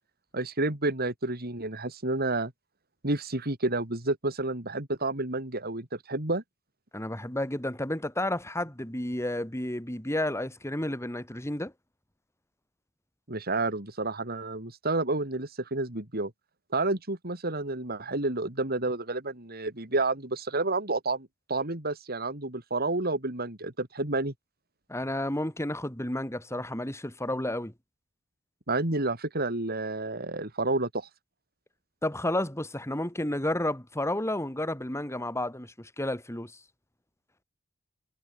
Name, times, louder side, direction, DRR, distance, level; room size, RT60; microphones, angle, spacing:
voice 1, 0.3-2.5 3.0-6.4 13.3-16.3 16.7-24.3 28.7-31.1, right 2 dB, 50° right, 4.1 m, -30 dB
voice 2, 6.9-11.7 24.9-27.7 32.0-36.6, left 1 dB, 15° left, 3.5 m, -31 dB
head